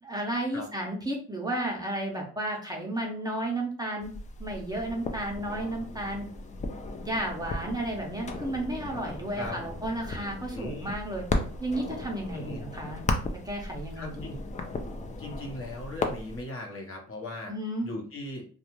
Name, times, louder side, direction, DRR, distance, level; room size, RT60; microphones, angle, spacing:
voice 1, 0.0-4.1 4.4-6.3 7.0-11.2 11.6-13.1 13.4-14.4 17.5-17.9, right 1 dB, 15° right, -1 dB, 0.6 m, -33 dB
sound 1, 4.0-16.4, left 2 dB, 25° left, 0.4 m, -36 dB
voice 2, 10.5-11.0 12.3-12.6 13.9-14.4 15.2-17.5 17.8-18.5, left 2 dB, 45° left, 1 dB, 0.9 m, -38 dB
2.4 x 2.3 x 2.9 m, 0.43 s
cardioid pair, 90°, 30 cm